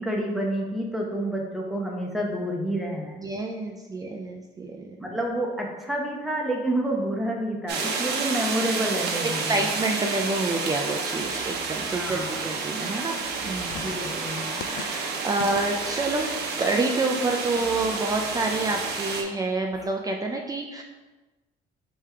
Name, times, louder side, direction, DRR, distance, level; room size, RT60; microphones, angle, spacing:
voice 1, 0.0-3.2 5.0-9.7 11.9-12.4 13.8-14.5, right 1 dB, ahead, -1 dB, 0.9 m, -29 dB
voice 2, 3.2-5.0 9.5-13.2 13.4-13.9 14.6-16.3 16.6-20.8, right 2 dB, 20° right, 2 dB, 0.4 m, -28 dB
sound 1, 7.7-19.2, right 4 dB, 75° right, 0.7 m, -30 dB
sound 2, 10.2-16.0, left 7 dB, 80° left, 0.4 m, -44 dB
sound 3, 11.1-19.9, left 1 dB, 25° left, 1.1 m, -47 dB
3.5 x 3.4 x 4.3 m, 1.2 s
cardioid pair, 110°, 17 cm